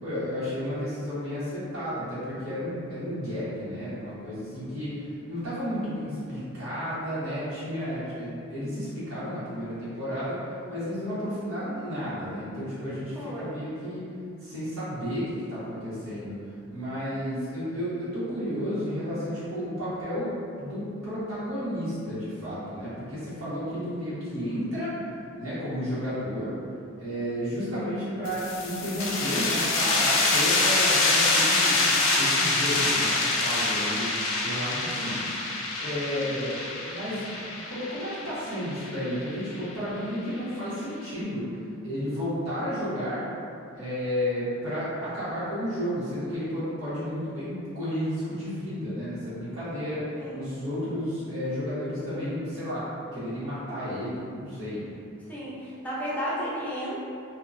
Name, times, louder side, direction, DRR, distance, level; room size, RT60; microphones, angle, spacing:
voice 1, 0.0-10.4 10.7-14.1 14.4-16.4 16.7-25.0 25.4-26.5 27.0-34.1 34.4-41.6 41.8-43.2 43.7-54.8, equal, 90° right, -12 dB, 1.1 m, -32 dB
voice 2, 13.2-13.5 34.9-35.2 36.2-36.3 50.2-50.4 55.3-57.0, equal, 10° left, -9 dB, 0.5 m, -33 dB
sound 1, 28.3-39.6, left 2 dB, 70° left, 0.4 m, -25 dB
2.7 x 2.1 x 2.4 m, 2.5 s
head